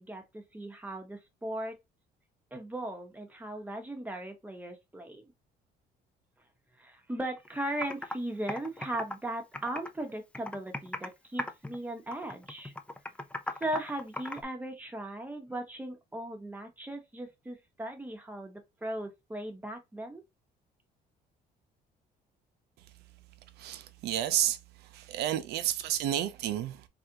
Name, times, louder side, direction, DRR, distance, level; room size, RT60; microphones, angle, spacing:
voice 1, 0.0-1.8 2.5-5.2 6.8-12.7 13.6-20.2, right 1 dB, 10° right, 0.9 m, -38 dB
Computer keyboard, 7.4-7.5 7.8-8.1 8.5-10.0 10.3-11.1 11.4-11.8 12.1-14.4, left 1 dB, 5° left, 0.5 m, -37 dB
voice 2, 23.6-26.9, right 11 dB, 75° right, 0.6 m, -31 dB
3.4 x 2.4 x 2.8 m
cardioid pair, 110°, 17 cm